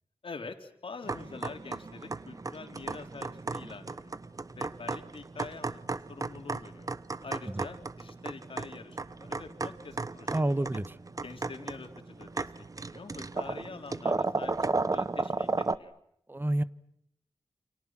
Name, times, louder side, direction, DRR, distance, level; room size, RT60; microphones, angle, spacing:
voice 1, 0.2-4.2 4.6-6.9 7.2-10.8 11.2-12.5 12.8-14.5 14.8-15.9, left 4 dB, 65° left, 3.8 m, -45 dB
sound 1, 1.0-15.8, right 3 dB, 35° right, 1.0 m, -35 dB
voice 2, 10.3-10.8 16.3-16.6, right 1 dB, 20° right, 1.3 m, -28 dB
30.0 x 28.5 x 6.2 m
wide cardioid pair, 110°, 10 cm